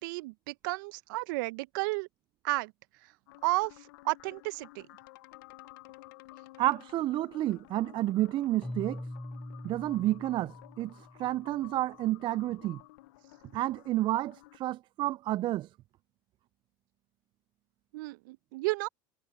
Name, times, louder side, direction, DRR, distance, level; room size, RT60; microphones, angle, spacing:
voice 1, 0.0-2.1 2.4-2.7 3.4-4.9 17.9-18.9, right 23 dB, 70° right, 1.0 m, -32 dB
sound 1, 3.3-14.6, left 20 dB, 70° left, 1.0 m, -53 dB
voice 2, 6.6-9.0 9.6-10.9 11.2-12.8 13.5-15.7, right 15 dB, 45° right, 0.5 m, -30 dB
Keyboard (musical), 8.6-11.6, left 1 dB, 5° left, 6.4 m, -43 dB
hypercardioid pair, 80°, 11 cm